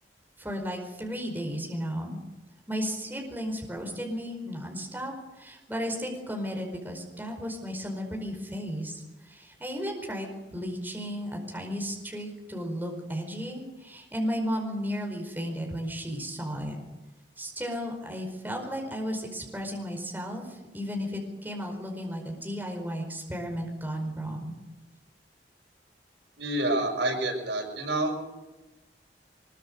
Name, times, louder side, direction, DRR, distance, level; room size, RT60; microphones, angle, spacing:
voice 1, 0.4-2.2 2.7-16.8 17.4-24.6, equal, 10° right, 2 dB, 4.9 m, -34 dB
voice 2, 26.4-28.1, right 1 dB, 90° right, 2 dB, 6.5 m, -28 dB
23.5 x 22.0 x 6.7 m, 1.1 s
head